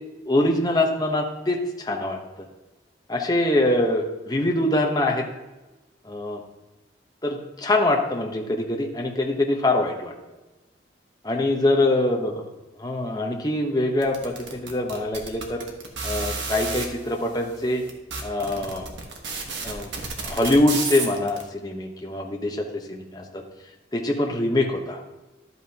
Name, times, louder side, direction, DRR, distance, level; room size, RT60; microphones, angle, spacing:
voice 1, 0.3-2.5 3.1-5.3 6.0-6.4 7.2-10.1 11.2-12.4 12.8-15.6 16.0-17.8 18.2-18.9 19.6-19.9 20.2-23.4 23.9-25.0, left 1 dB, 20° left, 2 dB, 1.0 m, -24 dB
sound 1, 14.0-16.9 17.5-17.6 17.9-21.4, right 4 dB, 80° right, 1.4 m, -31 dB
12.0 x 8.2 x 2.9 m, 1.1 s
head